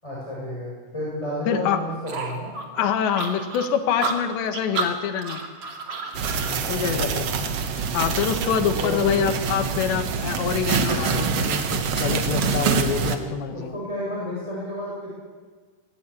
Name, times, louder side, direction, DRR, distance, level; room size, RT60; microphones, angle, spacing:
voice 1, 0.0-2.6 6.6-7.3 8.6-9.2 13.1-13.3 13.5-15.1, left 1 dB, 5° left, -5 dB, 7.2 m, -32 dB
voice 2, 1.5-1.8 2.7-5.4 6.7-7.2 7.9-13.7, left 8 dB, 80° left, 7 dB, 3.7 m, -25 dB
sound 1, 2.1-6.6, right 3 dB, 40° right, 2.9 m, -31 dB
sound 2, 6.1-13.2, right 5 dB, 85° right, 1.4 m, -25 dB
22.5 x 19.5 x 8.6 m, 1.4 s
omnidirectional pair, 5.0 m